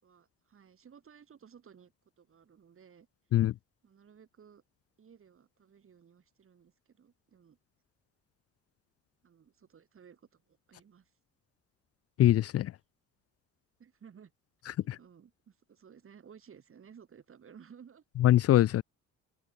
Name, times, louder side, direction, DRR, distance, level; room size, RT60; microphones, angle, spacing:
voice 1, 0.0-1.9 2.2-3.1 3.8-4.6 5.0-7.6 9.2-11.1 13.8-14.3 15.0-18.0, right 7 dB, 45° right, 7.2 m, -57 dB
voice 2, 12.2-12.7 14.9-15.0 18.2-18.8, left 13 dB, 50° left, 0.5 m, -23 dB
open air
cardioid pair, 100°, 30 cm